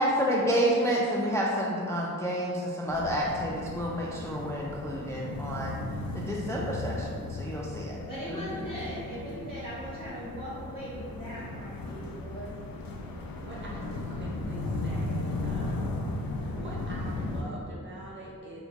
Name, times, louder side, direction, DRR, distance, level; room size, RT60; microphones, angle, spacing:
voice 1, 0.0-5.8 6.1-8.0 8.3-8.4, equal, 10° left, -4 dB, 0.3 m, -29 dB
sound 1, 2.9-17.4, left 2 dB, 80° left, 0.5 m, -36 dB
voice 2, 8.1-12.9, equal, 25° left, -10 dB, 0.8 m, -39 dB
voice 3, 13.5-16.0 16.2-18.6, right 1 dB, 35° right, -5 dB, 0.6 m, -45 dB
2.9 x 2.2 x 4.1 m, 2.2 s
wide cardioid pair, 85°, 35 cm